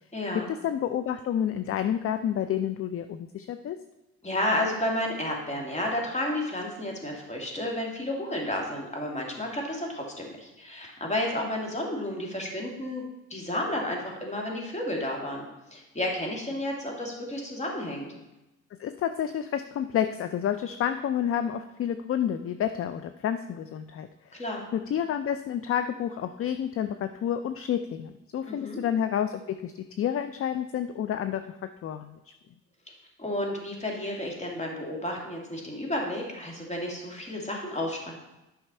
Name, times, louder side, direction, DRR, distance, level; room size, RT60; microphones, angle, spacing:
voice 1, 0.1-0.5 4.2-13.0 13.3-15.5 15.7-18.1 24.3-24.6 28.5-28.8 33.2-38.1, left 1 dB, 20° left, 0 dB, 2.3 m, -31 dB
voice 2, 0.6-3.8 18.8-24.4 24.7-31.4 31.8-32.2, left 9 dB, 45° left, 10 dB, 0.5 m, -29 dB
8.8 x 5.8 x 4.3 m, 1.0 s
cardioid pair, 80°, 30 cm